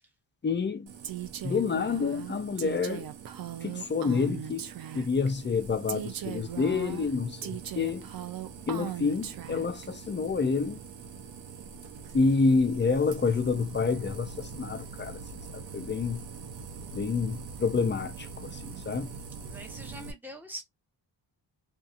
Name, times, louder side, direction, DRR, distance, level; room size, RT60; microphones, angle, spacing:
voice 1, 0.4-0.9 1.4-3.1 3.6-4.7 4.9-8.0 8.7-10.8 12.1-15.2 15.7-16.2 16.9-19.1, left 4 dB, 25° left, 0.4 m, -28 dB
sound 1, 0.9-20.1, right 5 dB, 70° right, 0.9 m, -44 dB
Female speech woman speaking, 1.0-5.3 5.9-9.9, right 11 dB, 50° right, 0.5 m, -39 dB
voice 2, 19.4-20.6, equal, 5° right, 1.0 m, -43 dB
2.8 x 2.4 x 2.4 m
cardioid pair, 110°, 47 cm